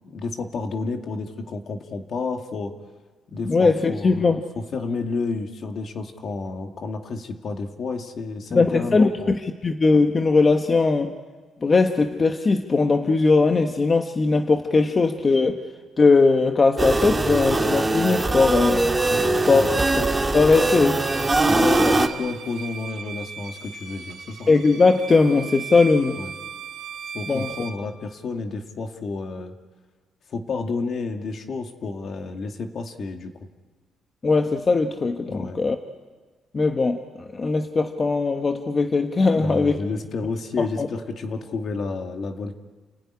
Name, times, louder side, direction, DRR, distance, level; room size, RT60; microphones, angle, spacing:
voice 1, 0.0-2.7 3.3-9.3 19.1-19.8 21.4-24.5 26.2-26.3 27.1-29.5 30.3-33.3 35.3-35.6 39.3-42.6, left 4 dB, 55° left, 5 dB, 2.4 m, -31 dB
voice 2, 3.4-4.4 8.5-11.1 11.6-15.6 16.0-18.9 19.5-19.7 19.9-20.1 20.3-21.0 21.5-21.9 24.5-26.2 27.3-27.5 34.2-35.8 36.5-37.0 37.3-39.8 40.6-40.9, left 3 dB, 35° left, 5 dB, 1.4 m, -19 dB
sound 1, 16.8-22.1, right 2 dB, 20° right, 2.0 m, -22 dB
Bowed string instrument, 21.0-27.8, right 6 dB, 70° right, 2.7 m, -37 dB
29.5 x 16.0 x 9.9 m, 1.4 s
cardioid pair, 90°, 0 cm